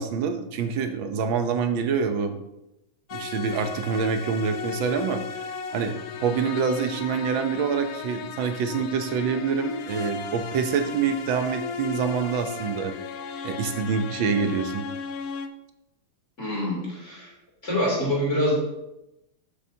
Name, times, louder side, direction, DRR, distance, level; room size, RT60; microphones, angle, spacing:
voice 1, 0.0-2.4 3.1-5.4 5.7-12.9 13.4-14.9, right 6 dB, 75° right, 7 dB, 1.7 m, -26 dB
sound 1, 3.1-15.5, left 6 dB, 70° left, 0.9 m, -36 dB
voice 2, 16.4-17.3 17.6-18.6, equal, 35° left, -4 dB, 3.5 m, -25 dB
13.0 x 8.1 x 2.9 m, 0.90 s
omnidirectional pair, 2.2 m